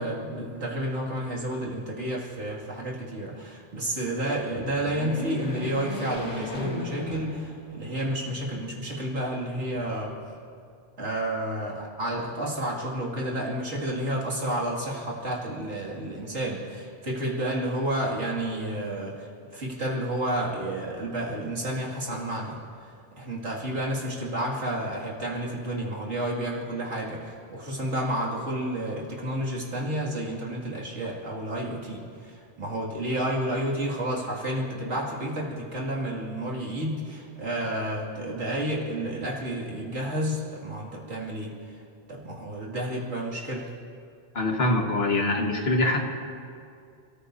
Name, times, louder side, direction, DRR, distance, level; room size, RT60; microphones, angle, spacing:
voice 1, 0.0-10.2 11.0-41.8 42.1-43.7, right 1 dB, 85° right, -4 dB, 2.8 m, -31 dB
sound 1, 4.4-7.9 8.4-8.5 9.6-10.4, left 2 dB, 80° left, 2.3 m, -37 dB
voice 2, 44.4-46.0, left 2 dB, 65° left, 1 dB, 1.8 m, -24 dB
29.0 x 14.0 x 2.8 m, 2.4 s
omnidirectional pair, 1.2 m